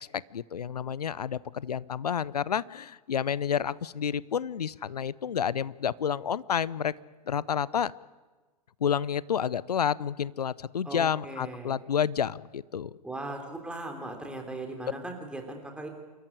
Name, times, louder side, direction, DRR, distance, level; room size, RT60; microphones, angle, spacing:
voice 1, 0.1-6.9 7.3-7.9 8.8-12.9, left 8 dB, 70° left, 22 dB, 0.7 m, -30 dB
voice 2, 10.8-11.8 13.0-15.9, right 2 dB, 5° right, 3 dB, 3.4 m, -38 dB
28.0 x 14.0 x 9.7 m, 1.3 s
figure-of-eight pair, 105°, 21 cm